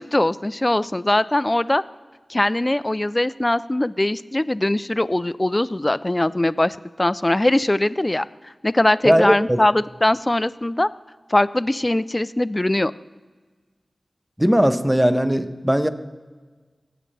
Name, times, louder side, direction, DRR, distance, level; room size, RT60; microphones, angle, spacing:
voice 1, 0.0-1.8 2.3-8.2 8.6-10.9 11.3-12.9, left 1 dB, 25° left, 16 dB, 0.3 m, -21 dB
voice 2, 9.0-9.6 14.4-15.9, equal, 10° right, 11 dB, 0.7 m, -18 dB
18.5 x 8.8 x 3.3 m, 1.4 s
cardioid pair, 45°, 0 cm